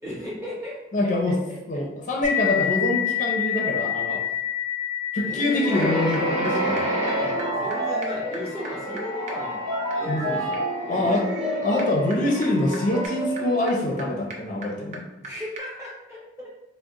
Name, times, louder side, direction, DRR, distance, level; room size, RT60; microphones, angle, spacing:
voice 1, 0.0-0.8 1.3-1.8 4.1-4.4 5.2-5.9 7.2-9.6 10.0-10.6 10.9-11.2 15.2-16.5, left 1 dB, 15° right, -7 dB, 0.8 m, -36 dB
voice 2, 0.9-1.4 1.7-4.2 5.1-6.9 10.0-10.4 10.9-11.2 11.6-15.0, left 1 dB, 40° left, -1 dB, 0.5 m, -25 dB
sound 1, 2.2-11.5, left 10 dB, 90° right, 0.7 m, -30 dB
sound 2, 5.5-5.6 5.8-5.9 6.1-6.2 6.5-6.6 6.8-6.9 7.1-7.2 7.4-7.5 7.7-15.3 15.6-15.7, right 2 dB, 35° right, 0.4 m, -43 dB
sound 3, 5.6-14.4, right 1 dB, 65° right, 1.1 m, -28 dB
2.4 x 2.0 x 3.8 m, 0.97 s
head